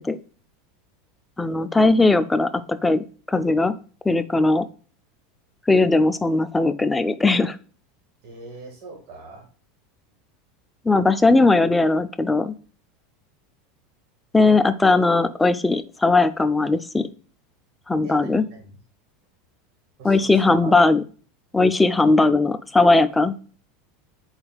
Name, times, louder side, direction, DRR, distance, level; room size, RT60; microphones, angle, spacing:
voice 1, 1.4-3.7 4.1-4.7 5.7-7.6 10.9-12.5 14.3-17.1 17.9-18.4 20.0-21.0 21.5-23.3, left 3 dB, 10° left, 12 dB, 0.3 m, -18 dB
voice 2, 8.2-9.5 18.0-18.7 20.0-20.7, right 3 dB, 60° right, 1 dB, 1.6 m, -41 dB
4.3 x 4.0 x 2.3 m, 0.40 s
hypercardioid pair, 105°, 0 cm